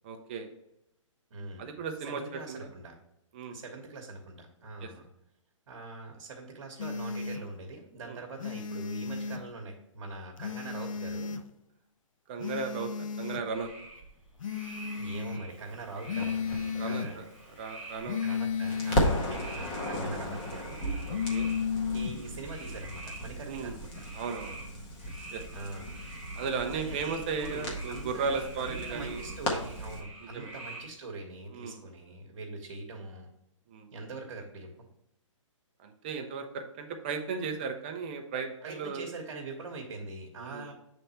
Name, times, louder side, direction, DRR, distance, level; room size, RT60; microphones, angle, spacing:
voice 1, 0.0-0.5 1.6-2.7 3.3-3.6 4.8-4.9 8.0-8.2 12.3-13.7 16.8-17.3 17.6-18.2 19.3-19.4 21.1-21.5 23.5-23.8 24.1-24.6 25.3-25.4 26.4-29.2 30.2-30.5 31.5-31.8 33.7-33.9 35.8-39.1 40.4-40.7, right 5 dB, 20° right, 4 dB, 0.4 m, -36 dB
voice 2, 1.3-1.6 2.1-3.0 3.5-5.0 5.7-11.4 14.9-17.3 18.2-20.8 21.9-24.0 25.5-25.9 26.7-33.3 33.9-34.7 38.6-40.7, right 3 dB, 55° right, 1 dB, 1.0 m, -42 dB
sound 1, 6.8-7.4 8.4-9.4 10.4-11.4 12.4-13.4 14.4-15.4 16.1-17.1 18.1-19.1 21.1-22.2, left 6 dB, 80° left, 0.5 m, -33 dB
sound 2, 13.5-30.9, right 2 dB, ahead, 1.1 m, -48 dB
Crackle, 16.2-18.3 18.7-30.0, equal, 20° left, 0.8 m, -36 dB
6.7 x 3.4 x 4.2 m, 0.82 s
hypercardioid pair, 165°, 17 cm